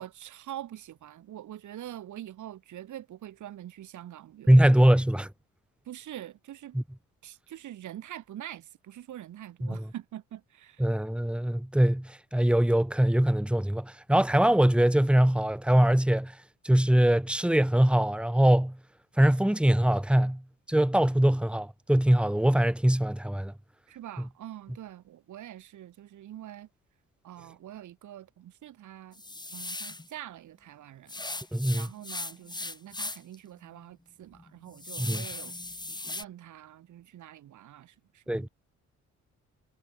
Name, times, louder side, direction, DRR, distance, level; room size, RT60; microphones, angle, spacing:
voice 1, 0.0-5.0 5.8-6.8 7.2-10.9 23.9-26.7 27.2-29.2 29.5-35.6 35.9-38.5, right 12 dB, 75° right, 5.8 m, -45 dB
voice 2, 4.5-5.3 6.7-6.8 9.7-9.8 10.8-16.4 16.6-18.8 19.2-20.4 20.7-23.5 31.5-31.9 35.0-35.2 38.3-38.5, right 1 dB, 5° right, 2.8 m, -22 dB
sound 1, 29.1-30.1 31.1-33.4 33.8-33.9 34.3-36.2, left 2 dB, 15° left, 3.3 m, -38 dB
cardioid pair, 90°, 30 cm